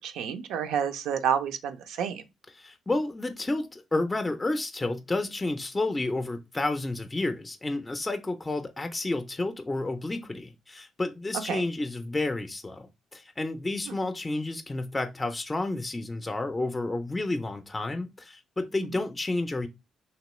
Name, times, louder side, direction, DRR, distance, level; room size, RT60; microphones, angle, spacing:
voice 1, 0.0-2.2 11.5-11.6 13.9-14.0, right 8 dB, 90° right, 0.4 m, -29 dB
voice 2, 2.6-19.7, left 2 dB, 20° left, 0.4 m, -31 dB
2.9 x 2.9 x 3.0 m
cardioid pair, 90°, 0 cm